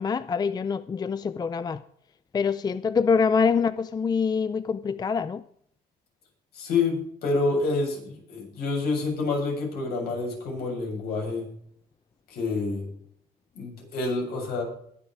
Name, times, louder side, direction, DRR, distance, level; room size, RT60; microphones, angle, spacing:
voice 1, 0.0-1.8 2.3-5.4, left 5 dB, 25° left, 0.4 m, -25 dB
voice 2, 6.5-11.5 12.3-12.9 13.5-14.6, left 3 dB, 70° left, 7.5 m, -28 dB
21.0 x 7.2 x 4.9 m
cardioid pair, 110°, 17 cm